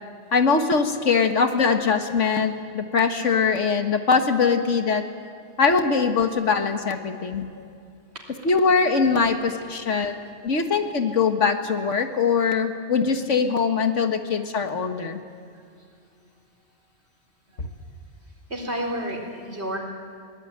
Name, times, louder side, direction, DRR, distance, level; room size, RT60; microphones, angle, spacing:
voice 1, 0.3-5.0 5.6-7.5 8.4-10.2 10.4-15.2 17.6-17.7, left 5 dB, 90° left, 6 dB, 1.8 m, -22 dB
voice 2, 7.1-7.7 8.4-9.0 9.8-10.3 10.6-11.1 15.1-15.2 15.5-16.4 17.5-18.0 18.3-19.8, equal, 65° right, 1 dB, 4.3 m, -36 dB
22.0 x 19.0 x 8.9 m, 2.4 s
omnidirectional pair, 1.2 m